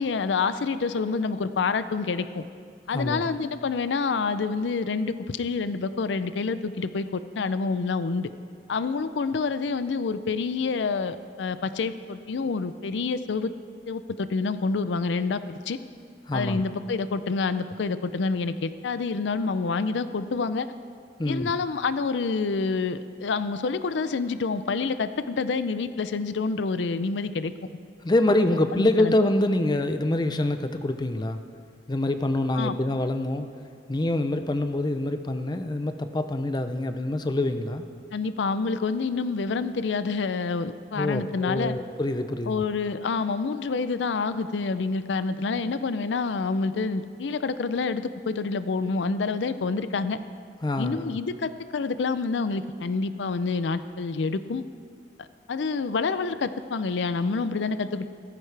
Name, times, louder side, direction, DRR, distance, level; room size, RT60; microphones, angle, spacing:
voice 1, 0.0-2.4 2.9-8.3 8.7-13.5 13.9-15.8 16.3-20.7 21.3-27.5 28.8-29.1 32.5-32.8 38.1-41.8 42.5-50.2 50.8-54.6 55.5-58.1, left 4 dB, 85° left, 13 dB, 0.5 m, -27 dB
voice 2, 2.9-3.2 16.3-16.6 21.2-21.5 28.0-31.4 31.9-33.5 33.9-37.8 41.0-42.6 50.6-51.0, left 1 dB, 25° left, 8 dB, 0.5 m, -25 dB
16.5 x 14.0 x 3.4 m, 2.2 s
head